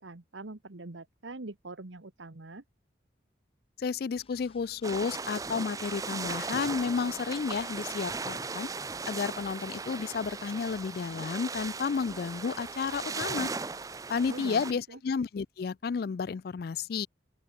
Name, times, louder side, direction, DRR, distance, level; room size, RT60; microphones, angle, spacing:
voice 1, 0.0-2.6 14.3-14.6 14.9-15.0, right 2 dB, 85° right, 1.4 m, -43 dB
voice 2, 3.8-8.7 9.1-13.5 14.1-17.1, left 5 dB, 55° left, 0.3 m, -32 dB
sound 1, 4.2-14.3, left 2 dB, 30° left, 3.2 m, -60 dB
sound 2, 4.8-14.7, right 4 dB, 20° right, 0.5 m, -37 dB
open air
head